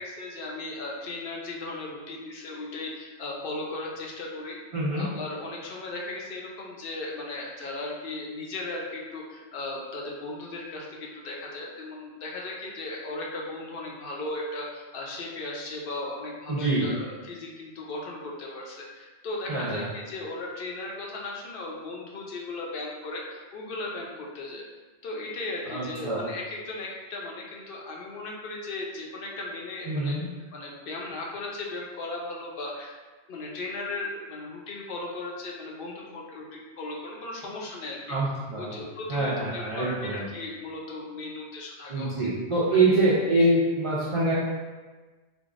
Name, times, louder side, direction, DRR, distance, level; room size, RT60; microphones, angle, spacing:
voice 1, 0.0-4.6 4.9-24.6 25.0-30.2 30.5-33.0 33.3-38.2 38.6-42.3 42.8-43.0, left 2 dB, 60° left, -2 dB, 0.7 m, -36 dB
voice 2, 4.7-5.1 16.5-16.9 19.5-19.9 25.7-26.2 29.9-30.3 38.1-38.8 39.1-40.2 41.9-44.3, right 2 dB, 55° right, -7 dB, 0.3 m, -25 dB
3.5 x 2.0 x 2.4 m, 1.3 s
omnidirectional pair, 1.2 m